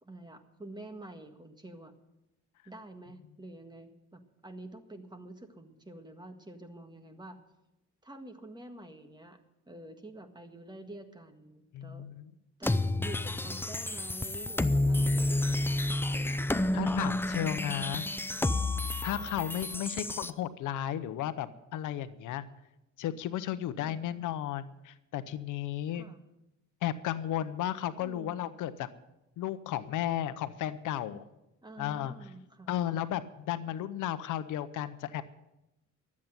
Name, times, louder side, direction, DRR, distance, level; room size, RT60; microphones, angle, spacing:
voice 1, 0.0-1.9 2.7-7.4 8.0-9.4 9.7-12.0 12.6-16.1 16.7-17.3 19.7-20.0 23.8-24.0 25.9-26.2 28.0-28.4 31.6-32.7, right 1 dB, 15° right, 6 dB, 1.8 m, -48 dB
voice 2, 11.7-12.3 16.7-18.0 19.0-22.4 23.0-26.1 26.8-28.9 29.4-31.2 31.8-32.1 32.7-35.2, left 11 dB, 85° left, 13 dB, 0.8 m, -34 dB
sound 1, 12.6-20.3, left 2 dB, 5° left, 0.5 m, -30 dB
12.0 x 8.5 x 9.1 m, 0.90 s
cardioid pair, 90°, 30 cm